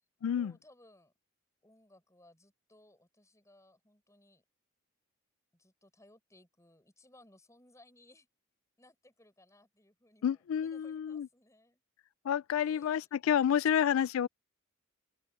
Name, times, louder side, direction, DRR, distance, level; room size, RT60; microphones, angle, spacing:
voice 1, 0.3-1.1 1.6-4.4 5.5-8.3 8.8-11.8 12.6-14.1, left 1 dB, 15° left, 7.1 m, -63 dB
voice 2, 10.2-11.3 12.2-14.3, left 9 dB, 70° left, 0.3 m, -29 dB
open air
head